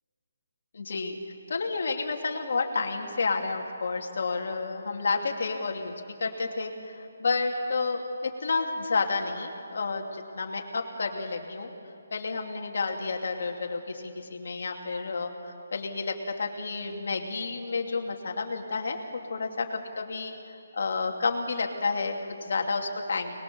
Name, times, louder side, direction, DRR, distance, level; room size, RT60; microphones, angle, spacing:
voice 1, 0.7-1.2 1.5-5.9 6.2-11.7 12.1-19.0 19.3-20.3 20.7-23.3, left 4 dB, 50° left, 2 dB, 2.9 m, -30 dB
29.0 x 21.0 x 7.2 m, 2.7 s
hypercardioid pair, 175°, 0 cm